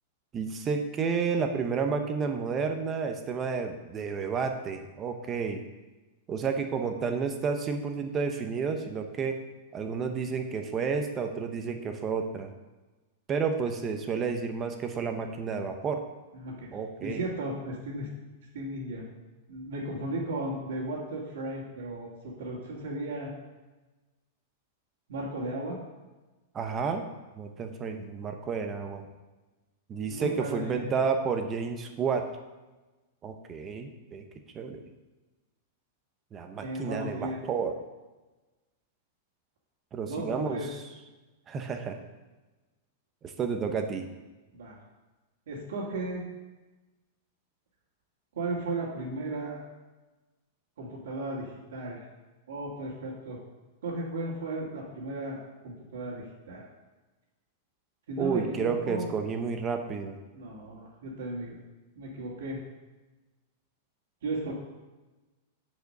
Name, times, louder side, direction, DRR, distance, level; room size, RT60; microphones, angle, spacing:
voice 1, 0.3-5.6 6.3-9.4 9.7-12.5 13.3-16.0 16.7-17.2 26.5-27.1 27.4-29.0 29.9-32.3 33.2-34.2 34.5-34.8 36.3-37.7 39.9-40.8 41.5-42.0 43.2-44.1 58.2-60.2, right 5 dB, 20° right, 5 dB, 0.7 m, -31 dB
voice 2, 16.3-18.1 18.5-19.0 19.5-23.3 25.1-25.8 30.1-30.9 36.6-37.4 40.0-40.7 44.5-44.8 45.5-46.2 48.3-49.6 50.8-52.0 52.5-53.4 53.8-55.4 55.6-56.7 58.1-59.1 60.3-61.6 62.0-62.6 64.2-64.5, right 2 dB, 80° right, -7 dB, 2.0 m, -35 dB
6.6 x 5.0 x 6.6 m, 1.2 s
supercardioid pair, 155°, 0 cm